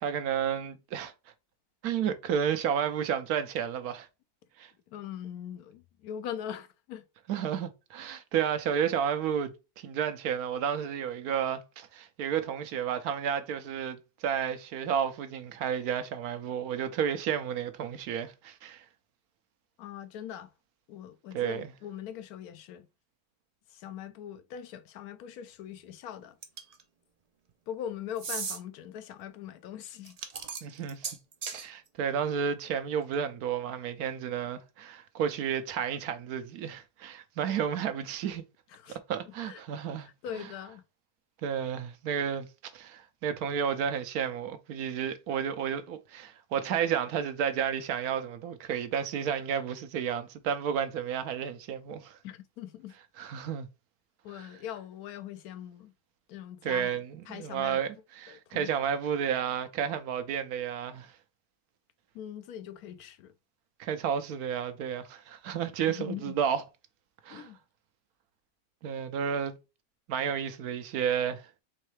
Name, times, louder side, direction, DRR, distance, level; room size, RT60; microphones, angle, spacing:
voice 1, 0.0-1.1 1.8-4.1 4.6-4.7 7.3-18.8 21.3-21.7 30.6-31.1 31.5-38.4 39.1-40.1 40.4-40.5 41.4-52.2 53.2-53.7 54.3-54.5 56.6-61.1 63.8-66.6 67.2-67.4 68.8-69.6 70.1-71.5, right 8 dB, 80° right, 1.2 m, -31 dB
voice 2, 4.9-7.0 19.8-20.5 20.9-22.9 23.7-26.4 27.7-30.2 37.5-37.6 38.7-39.0 39.3-39.6 40.0-40.8 52.2-53.0 54.2-55.9 56.3-57.8 58.3-58.7 62.1-63.3 65.9-66.3 67.3-67.6, left 10 dB, 80° left, 1.1 m, -41 dB
sound 1, 26.4-26.8 28.2-28.6 30.1-31.7, right 5 dB, 60° right, 0.4 m, -36 dB
4.6 x 3.1 x 3.1 m
omnidirectional pair, 1.6 m